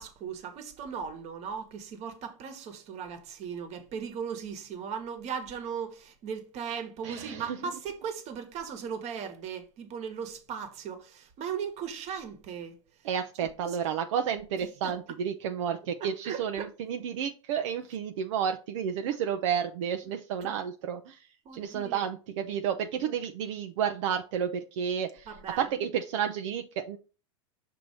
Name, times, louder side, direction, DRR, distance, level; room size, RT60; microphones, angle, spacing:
voice 1, 0.0-12.8 13.4-13.8 14.6-14.9 16.0-16.7 20.4-20.6 21.4-22.1 25.3-25.7, right 7 dB, 45° right, 1.3 m, -38 dB
voice 2, 7.0-7.6 13.0-27.0, right 8 dB, 70° right, 0.5 m, -31 dB
6.2 x 2.8 x 5.4 m
hypercardioid pair, 105°, 16 cm